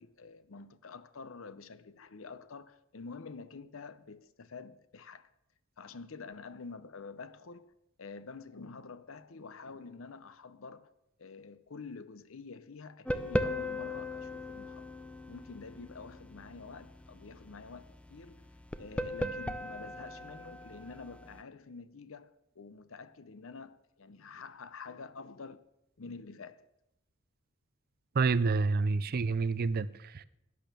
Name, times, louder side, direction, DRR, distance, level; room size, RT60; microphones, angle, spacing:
voice 1, 0.0-5.3 5.8-10.9 11.2-14.9 15.3-18.5 18.8-25.6 26.0-26.7, left 4 dB, 65° left, 0.7 m, -48 dB
sound 1, 13.1-21.4, left 1 dB, 5° left, 0.5 m, -38 dB
voice 2, 28.1-30.2, right 4 dB, 45° right, 0.4 m, -28 dB
12.0 x 10.5 x 6.9 m
head